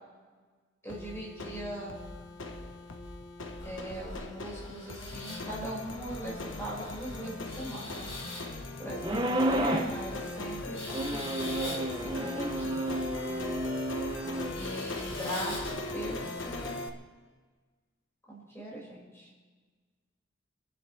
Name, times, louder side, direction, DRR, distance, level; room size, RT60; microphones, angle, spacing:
voice 1, 0.8-2.0 3.6-8.1 8.8-13.0 14.5-16.8 18.3-19.3, equal, 15° left, -6 dB, 6.2 m, -39 dB
sound 1, 0.9-16.9, left 2 dB, 85° left, 1.4 m, -39 dB
sound 2, 3.6-16.5, left 2 dB, 30° left, 2.9 m, -45 dB
sound 3, 9.0-10.0 10.9-14.5, right 1 dB, 25° right, 1.0 m, -31 dB
28.5 x 11.5 x 3.5 m, 1.4 s
head